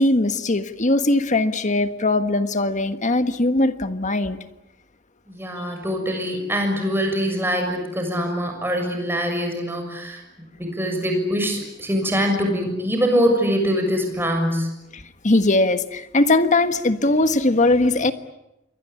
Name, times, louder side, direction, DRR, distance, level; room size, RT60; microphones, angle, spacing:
voice 1, 0.0-4.4 14.9-18.1, left 2 dB, 40° left, 10 dB, 1.4 m, -20 dB
voice 2, 5.3-14.7, equal, 10° right, 3 dB, 6.8 m, -23 dB
28.0 x 23.5 x 8.6 m, 0.92 s
head